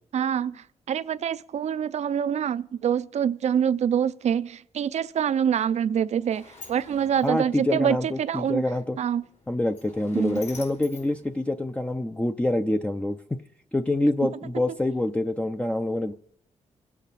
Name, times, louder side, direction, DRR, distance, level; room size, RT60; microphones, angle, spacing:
voice 1, 0.1-8.6 9.0-9.2 10.1-10.4, right 8 dB, 65° right, 0.5 m, -26 dB
Sliding door, 5.7-12.1, left 3 dB, 70° left, 3.8 m, -49 dB
voice 2, 7.2-9.0 9.5-13.4 13.7-16.1, left 1 dB, 10° left, 0.5 m, -26 dB
25.5 x 8.4 x 4.1 m
cardioid pair, 90°, 12 cm